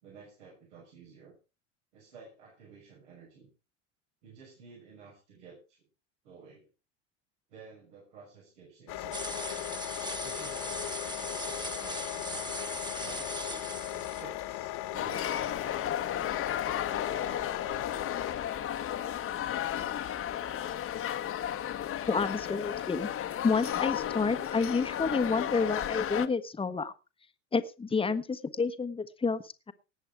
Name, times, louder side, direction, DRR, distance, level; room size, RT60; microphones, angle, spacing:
voice 1, 0.0-1.3 1.9-3.5 4.2-5.8 6.2-6.7 7.5-9.7 10.2-12.5 13.0-15.9 16.3-17.9, right 5 dB, 80° right, -2 dB, 6.0 m, -52 dB
sound 1, 8.9-18.3, left 15 dB, 60° left, 1.8 m, -38 dB
sound 2, 9.1-14.2, right 2 dB, 10° right, 1.7 m, -39 dB
sound 3, 14.9-26.3, left 10 dB, 40° left, 1.3 m, -34 dB
voice 2, 22.1-23.1 23.4-26.9 27.5-29.7, left 4 dB, 15° left, 10 dB, 1.3 m, -29 dB
18.5 x 8.0 x 4.8 m, 0.31 s
hypercardioid pair, 85°, 35 cm